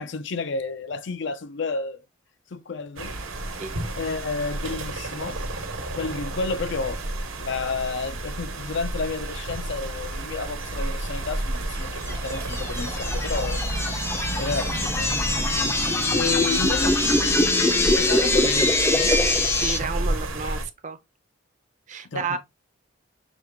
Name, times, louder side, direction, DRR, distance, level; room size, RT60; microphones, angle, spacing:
voice 1, 0.0-2.0 2.5-3.2 4.0-5.4 6.0-7.0 7.4-13.6 14.4-15.3 16.1-19.2 22.1-22.4, left 4 dB, 60° left, 0.5 m, -31 dB
sound 1, 3.0-20.6, right 2 dB, 85° right, 1.2 m, -31 dB
sound 2, 12.1-19.8, left 2 dB, 10° left, 0.5 m, -23 dB
voice 2, 19.6-21.0 21.9-22.4, right 4 dB, 35° right, 0.5 m, -31 dB
6.1 x 2.3 x 3.4 m
head